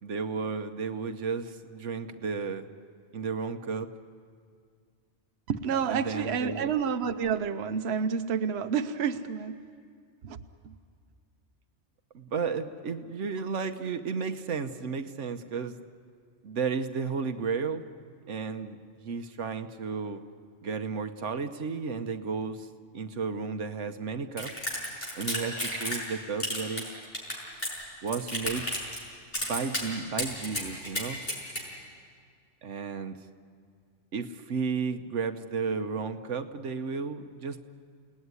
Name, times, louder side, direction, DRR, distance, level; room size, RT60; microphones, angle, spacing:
voice 1, 0.0-2.7 3.1-3.9 5.9-6.7 12.1-15.8 16.4-17.8 18.3-20.2 20.6-22.7 22.9-24.5 25.1-27.0 28.0-28.7 29.4-31.2 32.6-33.2 34.1-37.6, right 5 dB, 85° right, 7 dB, 1.3 m, -33 dB
voice 2, 5.5-9.6 10.2-10.4 10.6-10.7, right 6 dB, 65° right, 8 dB, 1.1 m, -29 dB
sound 1, 24.4-26.1 26.4-27.8 28.1-29.0 29.3-29.8 30.2-31.6, left 1 dB, 55° left, 6.6 m, -32 dB
29.5 x 18.5 x 9.7 m, 2.1 s
omnidirectional pair, 1.2 m